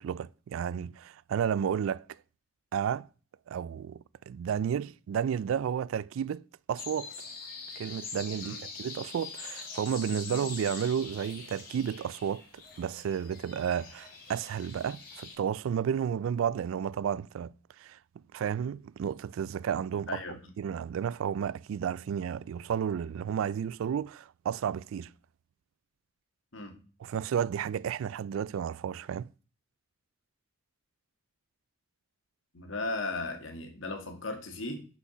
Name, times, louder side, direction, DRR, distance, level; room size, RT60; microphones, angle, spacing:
voice 1, 0.0-2.2 2.7-3.1 3.5-6.4 6.7-7.1 7.8-17.5 17.8-18.0 18.3-20.2 20.6-25.1 27.0-29.3, right 8 dB, 85° right, 0.3 m, -32 dB
sound 1, 6.8-15.4, left 4 dB, 45° left, 2.1 m, -44 dB
voice 2, 32.5-34.9, left 2 dB, 80° left, 1.6 m, -36 dB
6.7 x 5.1 x 5.7 m
head